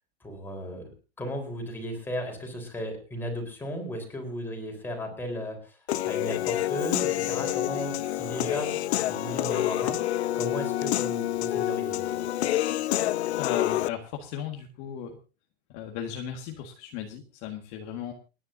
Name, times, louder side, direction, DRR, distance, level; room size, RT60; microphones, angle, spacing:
voice 1, 0.2-0.9 1.2-12.2, equal, 5° left, 2 dB, 3.9 m, -36 dB
Human voice / Piano, 5.9-13.9, left 13 dB, 90° left, 0.8 m, -28 dB
voice 2, 13.4-15.2 15.7-18.1, left 9 dB, 35° left, 2 dB, 1.7 m, -36 dB
29.5 x 10.5 x 2.7 m, 0.31 s
supercardioid pair, 165°, 32 cm